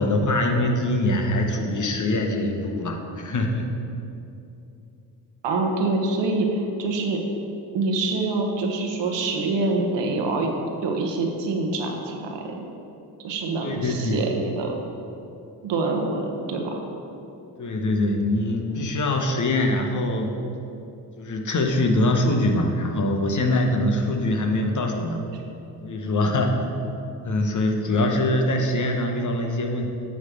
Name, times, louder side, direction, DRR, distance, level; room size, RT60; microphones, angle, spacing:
voice 1, 0.0-3.7 13.6-14.2 17.6-20.4 21.2-25.2 25.8-26.6 27.2-29.9, left 1 dB, 40° left, 3 dB, 1.0 m, -23 dB
voice 2, 5.4-7.2 7.7-10.5 10.8-12.6 13.2-14.8 15.6-16.8, right 3 dB, 70° right, 2 dB, 1.2 m, -25 dB
9.1 x 3.3 x 6.8 m, 2.8 s
supercardioid pair, 70°, 45 cm